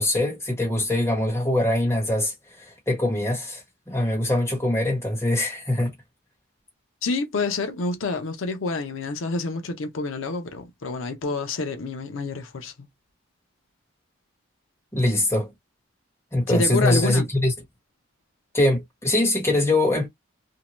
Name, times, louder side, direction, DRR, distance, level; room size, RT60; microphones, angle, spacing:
voice 1, 0.0-2.3 2.9-5.9 14.9-15.5 16.3-17.5 18.5-20.1, left 1 dB, 15° left, 1.1 m, -23 dB
voice 2, 7.0-12.9 16.5-17.3, left 3 dB, 85° left, 0.6 m, -28 dB
2.7 x 2.1 x 3.0 m
head